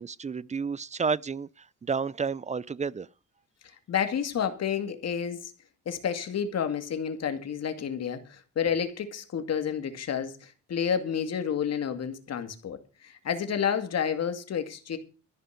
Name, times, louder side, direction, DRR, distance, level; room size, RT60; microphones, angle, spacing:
voice 1, 0.0-1.5 1.8-3.1, right 5 dB, 25° right, 0.5 m, -30 dB
voice 2, 3.9-5.5 5.9-15.0, left 8 dB, 55° left, 2.4 m, -30 dB
14.0 x 5.3 x 9.3 m
cardioid pair, 90°, 30 cm